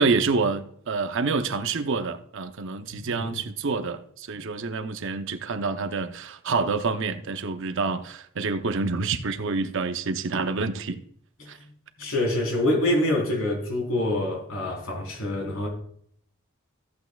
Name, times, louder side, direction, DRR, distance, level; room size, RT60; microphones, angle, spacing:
voice 1, 0.0-11.0 11.5-11.6, right 4 dB, 65° right, 0.7 m, -27 dB
voice 2, 2.9-3.3 11.4-11.5 12.0-15.7, left 1 dB, 80° left, 4.0 m, -26 dB
14.0 x 8.2 x 2.3 m
head